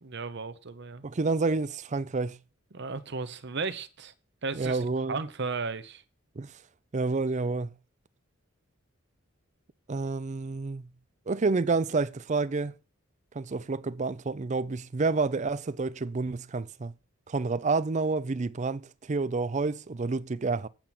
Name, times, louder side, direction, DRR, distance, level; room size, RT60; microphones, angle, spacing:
voice 1, 0.0-1.0 2.7-4.1 4.4-6.0, right 4 dB, 55° right, 0.8 m, -35 dB
voice 2, 1.0-2.4 4.5-5.2 6.4-6.5 6.9-7.7 9.9-10.9 11.3-12.7 13.3-16.9 17.3-20.7, right 3 dB, 35° right, 0.5 m, -29 dB
8.8 x 7.4 x 6.0 m
head